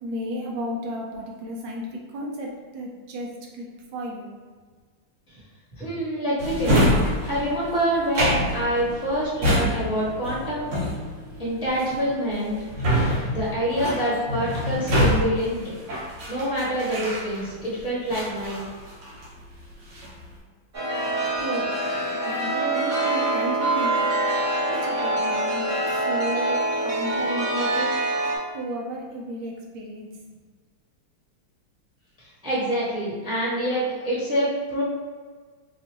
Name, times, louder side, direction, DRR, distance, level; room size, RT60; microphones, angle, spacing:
voice 1, 0.0-3.3 3.5-4.3 20.0-20.2 21.2-23.9 24.7-25.6 25.9-28.0 28.5-30.1, equal, 65° right, -1 dB, 1.2 m, -33 dB
voice 2, 5.8-6.8 7.3-10.9 11.4-12.5 13.3-15.6 16.3-18.6 32.2-34.8, equal, 5° right, -8 dB, 0.8 m, -26 dB
Drawer open or close, 6.4-17.7 18.1-19.4 19.7-20.2, equal, 85° right, 1.9 m, -26 dB
Chime, 20.7-28.4, right 2 dB, 40° right, 0.9 m, -25 dB
3.6 x 3.0 x 2.9 m, 1.5 s
omnidirectional pair, 2.3 m